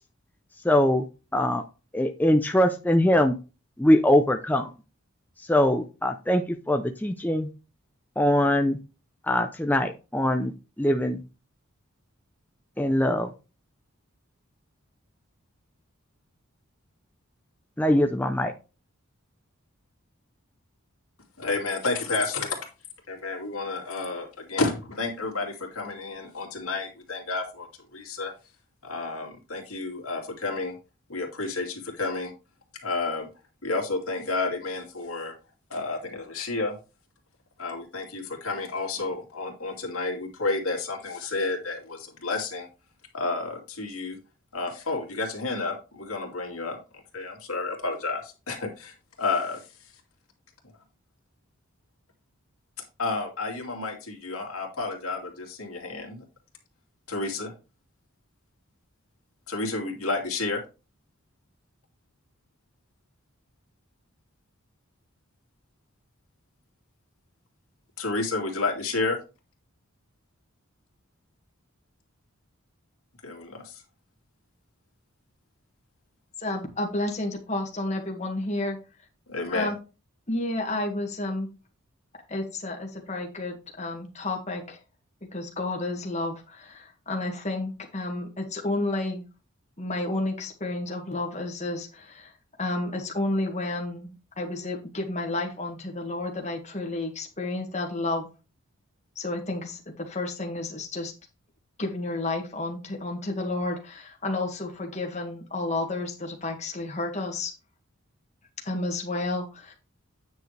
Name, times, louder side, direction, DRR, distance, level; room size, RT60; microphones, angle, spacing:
voice 1, 0.6-1.0 1.3-1.6 1.9-3.4 3.8-4.7 5.5-7.5 8.2-8.8 9.3-10.5 10.8-11.2 12.8-13.3 17.8-18.5, left 1 dB, 10° left, 5 dB, 0.5 m, -22 dB
voice 2, 21.4-22.6 23.1-28.3 28.8-30.7 31.1-32.3 32.8-33.3 33.6-35.3 35.7-36.8 37.6-42.7 43.1-44.2 44.5-46.8 47.1-49.6 53.0-56.2 57.1-57.5 59.5-60.6 68.0-69.2 73.2-73.8 79.3-79.7, left 3 dB, 85° left, 1 dB, 2.5 m, -31 dB
voice 3, 76.4-78.8 79.5-79.8 80.3-81.5 82.3-84.8 85.3-89.2 89.8-92.3 92.6-98.3 99.2-101.1 101.8-107.5 108.6-109.7, left 2 dB, 30° left, 1 dB, 1.9 m, -31 dB
9.4 x 6.4 x 3.3 m, 0.31 s
head